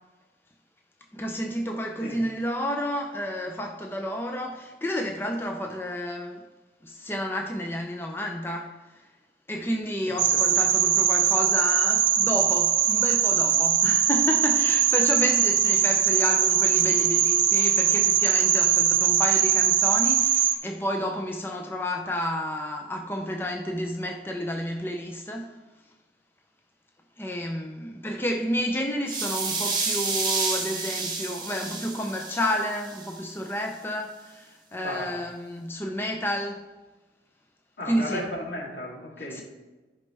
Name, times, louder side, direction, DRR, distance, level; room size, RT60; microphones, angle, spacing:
voice 1, 1.1-6.4 6.8-8.8 9.5-25.5 27.2-36.7 37.8-38.2 39.3-39.4, equal, 10° left, 0.5 m, -30 dB
voice 2, 10.0-10.4 34.8-35.1 37.8-39.4, left 1 dB, 80° left, 2.8 m, -35 dB
sound 1, 10.2-20.5, right 9 dB, 45° right, 0.7 m, -21 dB
sound 2, 29.1-33.1, right 4 dB, 25° right, 1.2 m, -30 dB
14.0 x 5.3 x 3.4 m
head